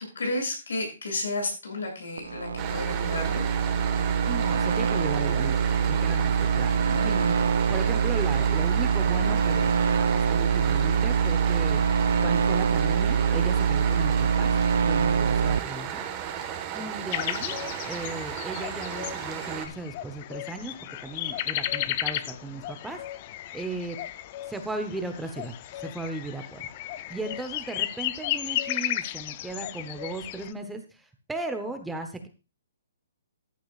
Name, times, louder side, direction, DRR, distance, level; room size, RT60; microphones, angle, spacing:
voice 1, 0.1-3.4, left 2 dB, 85° left, 2 dB, 7.6 m, -32 dB
sound 1, 2.2-15.6, right 6 dB, 85° right, 0.6 m, -24 dB
sound 2, 2.6-19.7, right 9 dB, 20° right, 1.5 m, -35 dB
voice 2, 4.3-7.4 7.7-14.5 14.8-16.0 16.7-17.6 17.8-20.8 21.0-23.0 23.5-24.0 24.5-26.6 27.1-32.3, right 2 dB, 5° right, 6 dB, 0.9 m, -36 dB
Cuckoo & The Nightingale Duet, 17.1-30.5, left 13 dB, 30° left, 0.5 m, -34 dB
14.5 x 11.0 x 2.4 m, 0.30 s
hypercardioid pair, 165°, 0 cm